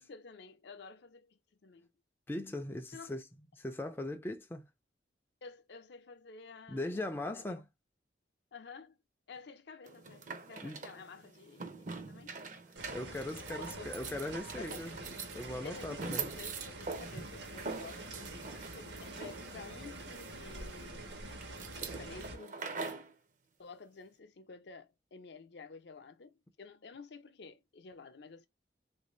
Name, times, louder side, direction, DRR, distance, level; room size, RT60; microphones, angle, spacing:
voice 1, 0.0-1.9 2.9-3.1 5.4-7.6 8.5-9.0 9.3-12.4 13.5-13.9 14.5-14.9 15.6-18.3 18.7-21.1 21.9-23.2 23.6-28.5, left 4 dB, 70° left, 0.5 m, -51 dB
voice 2, 2.3-3.2 3.6-4.7 6.7-7.6 10.6-10.8 12.9-15.0 15.4-16.3, left 1 dB, 10° left, 0.3 m, -39 dB
sound 1, 9.9-23.1, right 5 dB, 40° right, 0.5 m, -44 dB
sound 2, 12.8-22.4, right 2 dB, 75° right, 0.9 m, -46 dB
3.2 x 2.6 x 3.0 m
head